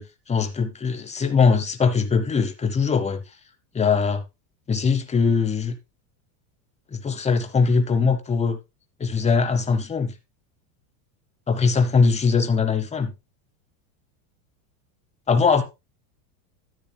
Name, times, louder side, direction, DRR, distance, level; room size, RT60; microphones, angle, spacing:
voice 1, 0.0-3.2 3.7-4.2 4.7-5.8 6.9-8.6 9.0-10.1 11.5-13.1 15.3-15.6, left 5 dB, 15° left, 8 dB, 1.0 m, -21 dB
11.0 x 9.1 x 2.2 m, 0.24 s
supercardioid pair, 135°, 48 cm